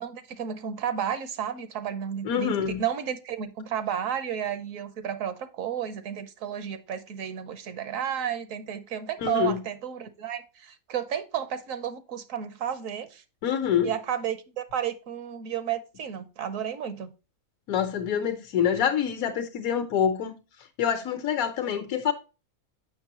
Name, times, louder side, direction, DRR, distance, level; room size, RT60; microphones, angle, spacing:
voice 1, 0.0-13.2 13.8-17.1, right 9 dB, 70° right, 1.1 m, -32 dB
voice 2, 2.2-2.8 9.2-9.6 13.4-13.9 17.7-20.3 20.8-22.1, left 8 dB, 80° left, 1.2 m, -26 dB
7.2 x 6.0 x 2.9 m
omnidirectional pair, 1.5 m